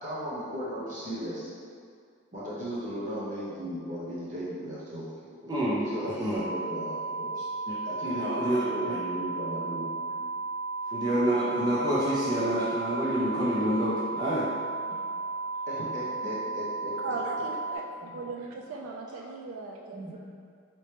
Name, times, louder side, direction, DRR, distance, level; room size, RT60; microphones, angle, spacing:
voice 1, 0.0-1.5 2.3-5.6 5.9-7.4 7.8-9.9 15.7-16.9, equal, 35° right, -8 dB, 0.8 m, -36 dB
voice 2, 5.5-5.9 6.2-6.4 7.7-7.8 8.0-9.0 10.9-14.5 19.9-20.1, right 1 dB, 20° right, -8 dB, 0.4 m, -28 dB
sound 1, 6.3-17.8, right 3 dB, 70° left, 0.5 m, -34 dB
voice 3, 17.0-20.2, right 3 dB, 85° right, 1 dB, 0.3 m, -38 dB
3.0 x 2.9 x 3.2 m, 2.2 s
head